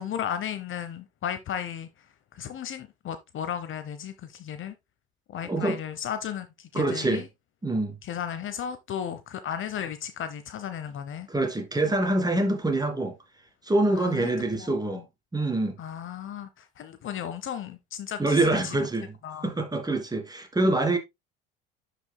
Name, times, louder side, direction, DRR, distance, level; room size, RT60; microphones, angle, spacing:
voice 1, 0.0-1.9 2.3-4.7 5.3-7.3 8.0-11.3 13.9-15.0 15.8-18.8 19.2-19.5, left 9 dB, 45° left, 0.9 m, -35 dB
voice 2, 5.4-5.8 6.7-7.3 7.6-8.0 11.3-13.2 13.6-15.0 15.3-15.8 18.2-19.2 19.4-21.0, right 2 dB, 15° right, 2.2 m, -25 dB
11.5 x 5.1 x 2.2 m
hypercardioid pair, 70°, 29 cm